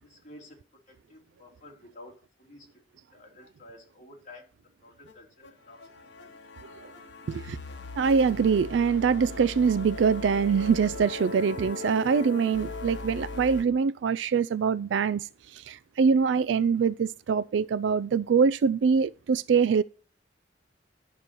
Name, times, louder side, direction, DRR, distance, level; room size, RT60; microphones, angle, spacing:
voice 1, 0.0-4.5 4.8-6.4, left 2 dB, 45° left, 3.4 m, -52 dB
sound 1, 5.1-5.2 5.4-5.5 5.8-13.6, left 3 dB, 85° left, 1.2 m, -39 dB
voice 2, 8.0-19.8, right 6 dB, 90° right, 0.3 m, -24 dB
11.0 x 6.8 x 4.6 m
head